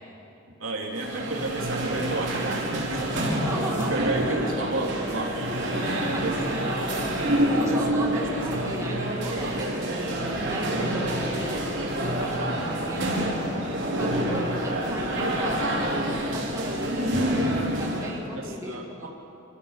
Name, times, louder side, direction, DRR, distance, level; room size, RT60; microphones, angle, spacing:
voice 1, 0.6-3.1 3.9-5.5 6.1-6.9 7.6-8.8 9.4-9.6 18.3-19.1, right 2 dB, 75° right, 0 dB, 3.0 m, -33 dB
sound 1, 0.9-18.2, right 1 dB, 60° right, 4.4 m, -27 dB
voice 2, 3.1-4.0 4.2-4.5 5.8-13.4 14.0-19.1, right 1 dB, 15° right, -1 dB, 2.2 m, -37 dB
28.0 x 14.0 x 7.3 m, 2.8 s
head